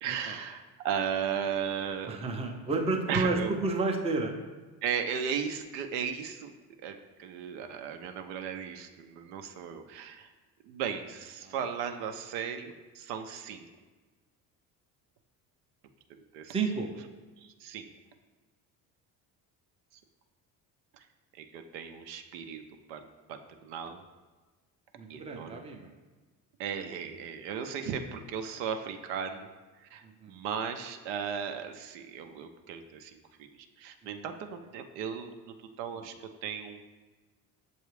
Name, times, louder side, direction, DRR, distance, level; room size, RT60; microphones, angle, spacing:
voice 1, 0.0-2.2 3.1-3.5 4.8-6.6 6.8-10.3 10.6-13.7 16.1-16.6 17.4-17.9 20.9-21.1 21.3-22.6 22.9-23.0 23.3-24.0 25.1-25.6 26.6-29.5 29.8-36.8, right 7 dB, 75° right, 6 dB, 0.5 m, -36 dB
voice 2, 2.1-4.3 11.4-11.5 16.5-16.9 25.0-25.9 30.0-30.3 34.0-34.1, right 3 dB, 15° right, 3 dB, 0.5 m, -31 dB
6.7 x 2.4 x 3.1 m, 1.3 s
hypercardioid pair, 65°, 46 cm